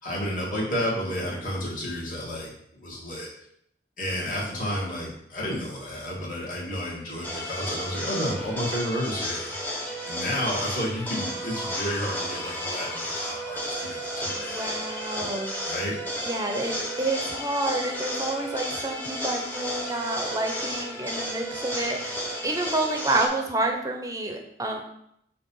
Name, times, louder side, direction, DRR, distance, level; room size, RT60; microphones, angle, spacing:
voice 1, 0.0-3.3 4.0-9.6 10.1-14.7 15.2-15.3 15.7-16.0, equal, 50° left, -5 dB, 2.1 m, -31 dB
sound 1, 7.2-23.3, equal, 10° left, 1.0 m, -33 dB
voice 2, 14.3-15.5 16.2-24.8, right 2 dB, 20° right, 3 dB, 0.7 m, -29 dB
6.6 x 2.9 x 5.5 m, 0.74 s
head